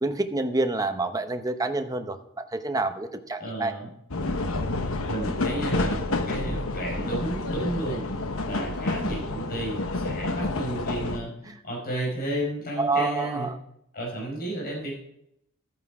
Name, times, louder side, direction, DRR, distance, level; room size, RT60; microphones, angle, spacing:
voice 1, 0.0-3.7 12.8-13.6, right 2 dB, 15° right, 7 dB, 0.9 m, -28 dB
voice 2, 3.4-3.9 5.1-11.3 11.6-13.5 13.9-15.0, right 1 dB, 45° left, -2 dB, 5.2 m, -32 dB
sound 1, 4.1-11.2, left 2 dB, 65° left, 1.1 m, -29 dB
13.0 x 9.2 x 4.8 m, 0.77 s
head